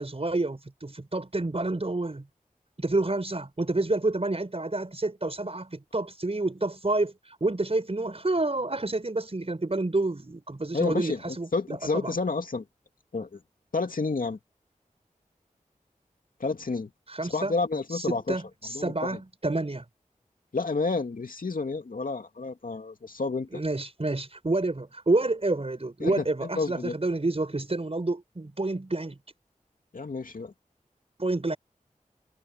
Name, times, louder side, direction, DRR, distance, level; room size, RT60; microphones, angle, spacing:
voice 1, 0.0-2.2 2.8-12.1 17.1-17.5 17.9-19.9 23.5-29.2 31.2-31.6, right 2 dB, 45° right, 5.6 m, -29 dB
voice 2, 10.7-12.6 13.1-13.4 13.7-14.4 16.4-16.9 17.2-18.4 18.7-19.2 20.5-23.6 26.0-27.0 29.9-30.5, left 3 dB, 75° left, 2.5 m, -30 dB
wide cardioid pair, 45°, 14 cm